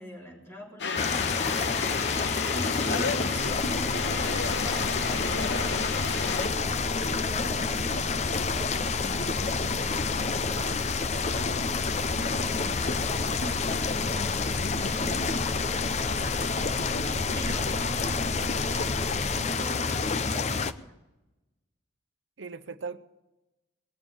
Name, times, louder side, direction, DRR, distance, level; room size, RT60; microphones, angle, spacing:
voice 1, 0.0-1.8 2.2-3.2 3.6-6.5 7.0-15.3 17.3-20.9, right 1 dB, 15° left, -3 dB, 3.7 m, -43 dB
sound 1, 0.8-6.5, left 5 dB, 65° left, 0.8 m, -33 dB
sound 2, 0.9-20.7, left 4 dB, 35° left, 0.5 m, -28 dB
voice 2, 2.5-3.6 16.7-17.9 22.4-23.0, right 4 dB, 80° right, 10 dB, 0.8 m, -42 dB
sound 3, 3.3-19.4, equal, 25° right, 1.1 m, -39 dB
20.0 x 7.3 x 9.9 m, 1.0 s
head